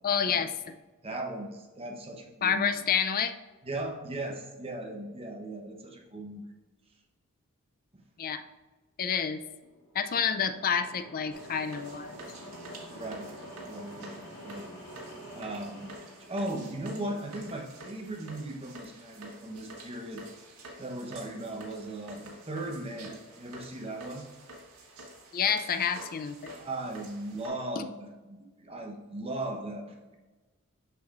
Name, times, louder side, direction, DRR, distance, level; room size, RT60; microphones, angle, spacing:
voice 1, 0.0-0.5 2.4-3.3 8.2-8.4 9.0-9.4 9.9-12.2 25.3-26.6, left 7 dB, 40° left, 9 dB, 0.4 m, -28 dB
voice 2, 1.0-2.7 3.6-6.4 7.9-8.0 12.9-13.3 13.7-14.7 15.3-15.9 16.2-20.5 20.8-24.2 26.5-30.2, right 1 dB, 25° right, 2 dB, 0.9 m, -38 dB
sound 1, 9.5-17.4, equal, 75° left, 1.4 m, -48 dB
sound 2, 11.3-27.5, right 2 dB, 85° right, 1.5 m, -49 dB
7.0 x 6.2 x 2.5 m, 1.2 s
head